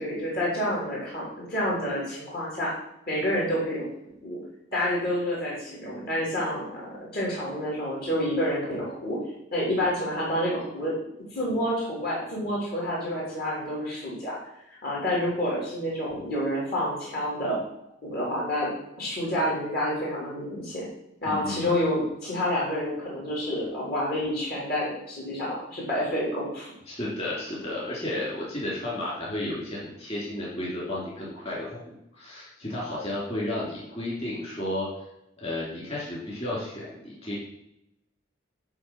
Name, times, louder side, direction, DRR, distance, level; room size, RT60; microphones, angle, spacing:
voice 1, 0.0-2.7 3.1-3.9 4.2-4.4 4.7-9.2 9.5-10.9 11.3-14.4 14.7-17.6 18.0-18.7 19.0-20.9 21.2-26.7, equal, 50° left, -5 dB, 3.4 m, -28 dB
voice 2, 21.2-21.7 26.9-31.8 32.2-34.9 35.4-37.4, left 1 dB, 30° left, -6 dB, 3.5 m, -32 dB
11.0 x 3.8 x 6.2 m, 0.84 s
head